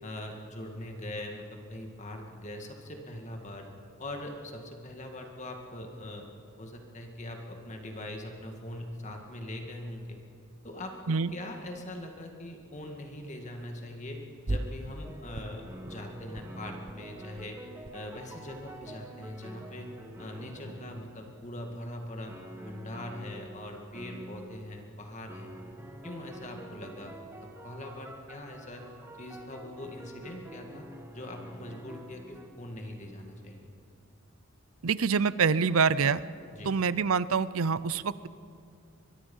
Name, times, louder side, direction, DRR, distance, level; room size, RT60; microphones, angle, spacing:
voice 1, 0.0-3.7 4.0-6.3 6.6-10.2 10.6-17.6 17.9-19.9 20.2-22.4 22.6-25.5 26.0-27.1 27.6-28.8 29.2-30.9 31.1-33.7 36.5-36.7, left 1 dB, 35° left, 3 dB, 2.0 m, -42 dB
sound 1, 14.5-15.1 15.3-16.0 16.3-16.5 16.7-16.9 17.2-18.0 18.3-19.2, right 1 dB, 35° right, 0.8 m, -38 dB
sound 2, 15.0-21.5 22.3-23.7 23.9-24.6 25.3-32.5, right 1 dB, 10° right, 1.8 m, -47 dB
voice 2, 34.8-36.2 36.6-38.3, right 5 dB, 75° right, 17 dB, 0.6 m, -26 dB
23.0 x 23.0 x 5.5 m, 2.4 s
head